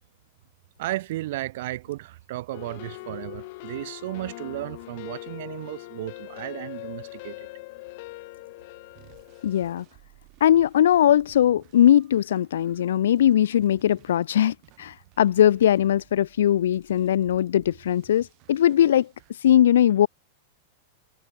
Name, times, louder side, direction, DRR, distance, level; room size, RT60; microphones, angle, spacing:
voice 1, 0.8-7.4, right 16 dB, 55° right, 2.6 m, -34 dB
sound 1, 2.5-9.8, left 23 dB, 45° left, 1.1 m, -41 dB
sound 2, 9.0-19.3, right 26 dB, 35° right, 7.5 m, -56 dB
voice 2, 9.4-9.8 10.4-20.1, left 11 dB, 90° left, 0.6 m, -20 dB
supercardioid pair, 170°, 0 cm